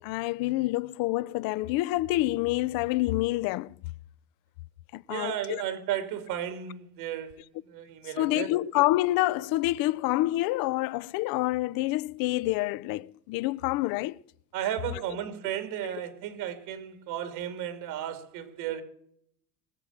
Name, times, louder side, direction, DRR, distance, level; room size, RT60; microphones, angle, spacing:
voice 1, 0.0-3.8 4.9-5.6 8.2-14.2 15.8-15.9, left 18 dB, 55° left, 0.5 m, -27 dB
voice 2, 5.1-8.5 14.5-18.8, right 10 dB, 70° right, 2.8 m, -34 dB
22.5 x 7.6 x 7.3 m
cardioid pair, 135°, 42 cm